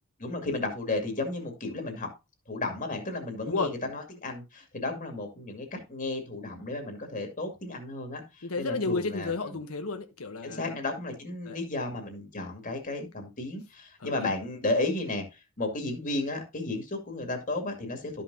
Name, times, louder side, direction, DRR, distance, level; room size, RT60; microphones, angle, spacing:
voice 1, 0.2-2.1 2.5-9.3 10.4-18.2, left 2 dB, 40° left, 2.2 m, -33 dB
voice 2, 8.4-10.7 11.5-11.6 14.0-14.3, left 3 dB, 80° left, 1.0 m, -32 dB
12.5 x 5.7 x 2.7 m
head